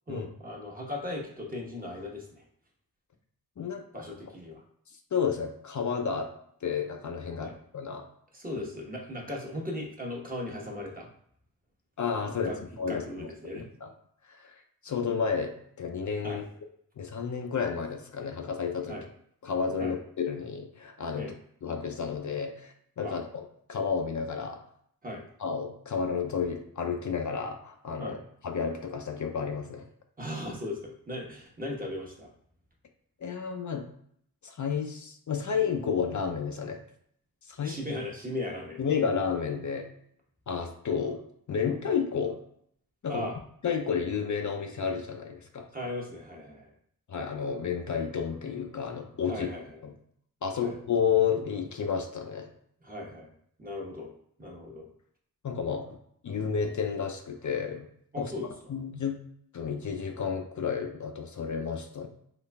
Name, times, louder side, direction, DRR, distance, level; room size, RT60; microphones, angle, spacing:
voice 1, 0.1-2.4 3.9-4.6 7.4-7.6 8.3-11.1 12.4-12.6 12.9-13.7 16.2-16.4 18.9-19.1 19.8-19.9 21.1-21.3 23.0-23.2 25.0-25.2 28.0-28.2 30.2-32.3 37.6-38.8 43.1-43.3 45.7-46.7 49.3-49.8 50.6-50.8 52.8-53.3 53.6-54.1 54.4-54.9 58.1-58.5, left 1 dB, 25° right, -1 dB, 1.0 m, -37 dB
voice 2, 5.1-6.3 6.6-8.1 12.0-12.5 12.8-13.3 13.5-13.9 14.4-14.5 14.8-16.4 17.0-19.0 19.4-21.3 21.6-23.4 23.7-24.6 25.4-28.2 28.4-29.8 33.2-33.9 34.4-36.8 37.5-37.8 38.8-39.9 40.5-41.2 41.5-42.4 43.0-43.3 43.6-45.7 47.1-49.5 49.8-49.9 50.4-52.5 55.4-55.9 56.2-57.9 58.2-58.3 58.7-59.2 59.5-62.1, left 6 dB, 55° left, 3 dB, 0.5 m, -31 dB
3.9 x 3.1 x 2.2 m, 0.66 s
cardioid pair, 55°, 36 cm